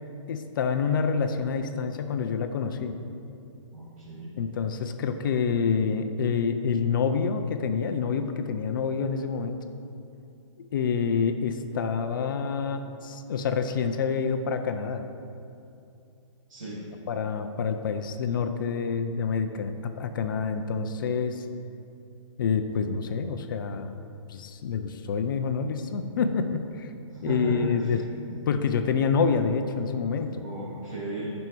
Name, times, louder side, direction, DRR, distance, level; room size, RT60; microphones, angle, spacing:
voice 1, 0.3-3.0 4.4-9.6 10.7-15.0 17.1-21.4 22.4-23.9 24.3-26.9 27.2-30.4, left 5 dB, 40° left, 7 dB, 0.5 m, -27 dB
voice 2, 3.7-4.3 16.5-16.8 27.1-27.7 30.4-31.3, right 2 dB, 90° right, -8 dB, 2.2 m, -35 dB
10.5 x 5.4 x 4.6 m, 2.6 s
hypercardioid pair, 165°, 17 cm